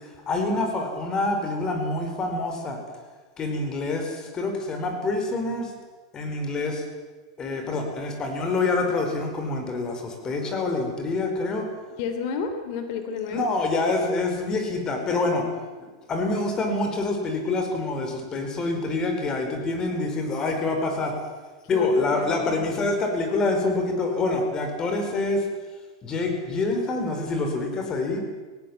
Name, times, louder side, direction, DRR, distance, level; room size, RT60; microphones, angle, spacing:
voice 1, 0.3-2.8 3.4-5.7 6.1-6.8 7.4-11.6 13.3-15.4 16.1-21.1 21.7-25.4 26.0-28.2, left 3 dB, 25° left, 4 dB, 4.9 m, -26 dB
voice 2, 12.0-13.5 21.7-22.6, left 5 dB, 55° left, 7 dB, 3.2 m, -31 dB
17.5 x 17.5 x 8.9 m, 1.4 s
supercardioid pair, 135°, 3 cm